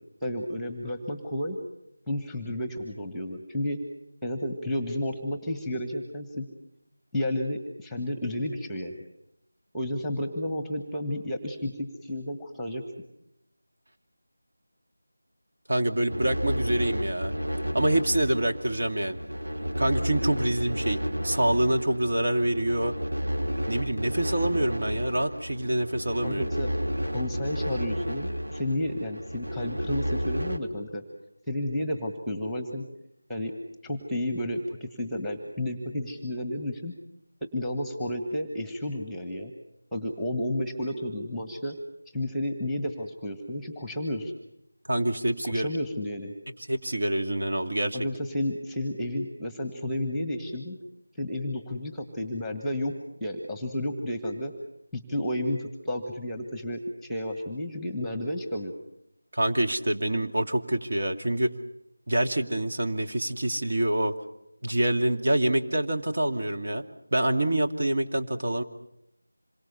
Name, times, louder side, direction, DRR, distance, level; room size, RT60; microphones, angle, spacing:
voice 1, 0.2-1.6 2.1-3.8 4.2-6.5 7.1-8.9 9.7-12.8 26.2-26.7 27.1-31.0 31.5-32.8 33.3-33.5 33.8-36.9 37.5-39.5 39.9-41.8 42.1-44.3 45.4-46.3 47.9-50.8 51.1-52.9 53.2-54.5 54.9-58.7, left 1 dB, ahead, 6 dB, 1.6 m, -31 dB
voice 2, 15.7-17.3 17.7-19.2 19.8-22.9 23.7-26.5 44.9-45.7 46.7-48.0 59.3-61.5 62.1-64.1 64.6-66.8 67.1-68.6, right 1 dB, 50° right, 4 dB, 2.4 m, -26 dB
sound 1, 16.1-30.6, equal, 80° right, 3.2 m, -32 dB
27.0 x 23.0 x 7.0 m, 0.79 s
figure-of-eight pair, 170°, 0 cm